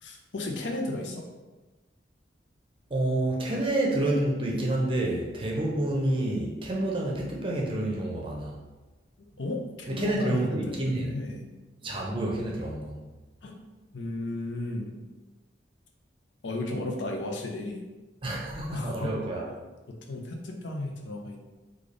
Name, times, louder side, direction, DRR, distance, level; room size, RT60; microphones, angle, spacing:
voice 1, 0.0-1.2 9.4-11.4 13.4-13.6 13.9-15.0 16.4-17.8 18.7-19.1 19.9-21.4, left 2 dB, 85° left, 1 dB, 0.6 m, -34 dB
voice 2, 2.9-8.5 9.9-11.1 11.8-13.0 18.2-19.5, right 1 dB, 30° right, -2 dB, 0.6 m, -28 dB
3.4 x 2.4 x 3.8 m, 1.2 s
head